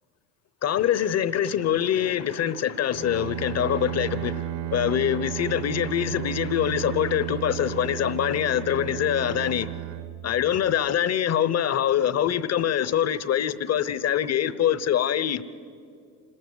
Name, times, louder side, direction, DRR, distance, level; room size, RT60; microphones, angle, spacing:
voice 1, 0.6-4.4 4.7-9.7 10.2-15.4, left 10 dB, 35° left, 0.9 m, -24 dB
Bowed string instrument, 2.9-10.9, right 12 dB, 65° right, 1.3 m, -33 dB
27.0 x 13.0 x 7.9 m
hypercardioid pair, 80°, 45 cm